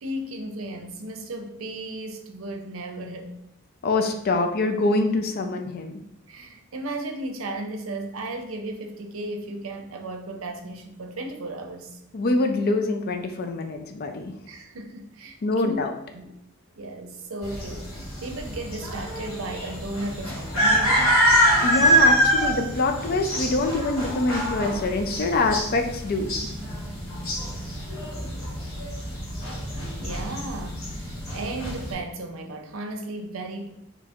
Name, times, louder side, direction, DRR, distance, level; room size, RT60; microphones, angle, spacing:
voice 1, 0.0-3.4 6.3-12.0 14.5-15.4 15.6-15.8 16.1-16.3 16.8-21.2 30.0-33.7, right 1 dB, 85° right, 5 dB, 0.6 m, -35 dB
voice 2, 3.8-5.9 12.1-14.3 15.4-15.9 21.6-26.5, left 2 dB, 50° left, 5 dB, 0.4 m, -25 dB
sound 1, 17.4-31.9, equal, 85° left, 1.3 m, -25 dB
3.0 x 2.4 x 4.2 m, 0.77 s
head